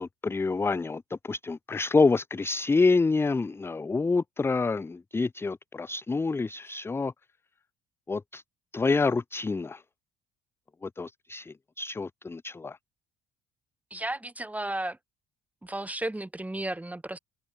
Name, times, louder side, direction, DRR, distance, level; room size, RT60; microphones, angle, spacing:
voice 1, 0.0-7.1 8.1-8.4 8.7-9.8 10.8-12.8, left 4 dB, 15° left, 0.5 m, -27 dB
voice 2, 13.9-15.0 15.6-17.2, right 1 dB, 10° right, 5.3 m, -33 dB
cardioid pair, 110°, 17 cm